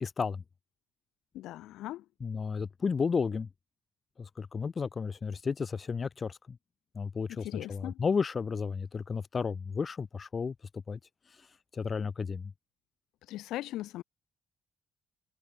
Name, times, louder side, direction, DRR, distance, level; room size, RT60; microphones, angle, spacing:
voice 1, 0.0-0.4 2.2-3.5 4.2-6.6 6.9-10.5 10.9-11.0 11.7-12.5, left 5 dB, 40° left, 0.7 m, -32 dB
voice 2, 1.3-2.0 7.3-8.0 13.3-14.0, left 15 dB, 90° left, 1.3 m, -39 dB
cardioid pair, 90°, 0 cm